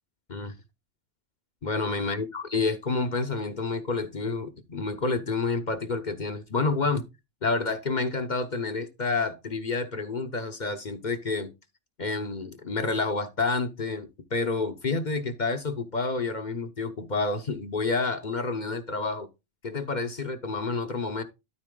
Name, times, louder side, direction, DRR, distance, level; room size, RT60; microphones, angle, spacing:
voice 1, 1.6-7.1 7.4-11.5 12.0-19.3 19.6-21.2, left 3 dB, 40° left, 0.9 m, -29 dB
12.5 x 4.3 x 3.8 m
omnidirectional pair, 1.2 m